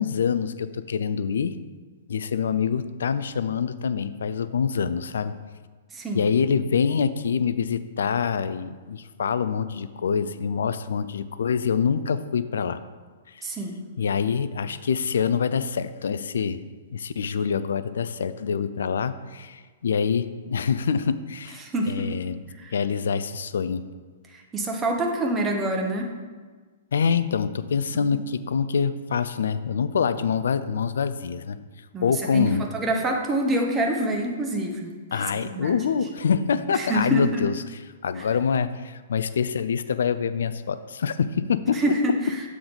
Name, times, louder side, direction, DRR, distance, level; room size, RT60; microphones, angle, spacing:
voice 1, 0.0-1.6 2.1-5.3 6.1-12.8 13.3-13.5 14.0-16.6 16.9-21.6 21.9-22.4 22.7-23.9 26.9-31.6 32.0-32.6 35.1-41.8, left 6 dB, 65° left, 13 dB, 0.3 m, -25 dB
voice 2, 5.9-6.3 13.4-13.8 21.6-22.2 22.6-22.7 24.3-26.1 31.9-35.8 36.7-37.5 38.2-38.3 41.7-42.4, right 1 dB, 15° right, 1 dB, 0.9 m, -27 dB
7.0 x 3.8 x 5.0 m, 1.4 s
figure-of-eight pair, 110°, 0 cm